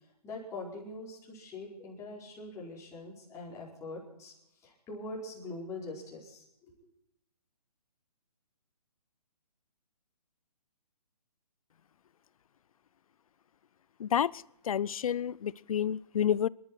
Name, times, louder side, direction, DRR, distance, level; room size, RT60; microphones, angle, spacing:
voice 1, 0.2-4.3 4.6-6.7, left 2 dB, 15° left, 4.8 m, -43 dB
voice 2, 14.0-16.5, left 9 dB, 60° left, 0.5 m, -30 dB
26.5 x 12.0 x 4.6 m
hypercardioid pair, 145°, 21 cm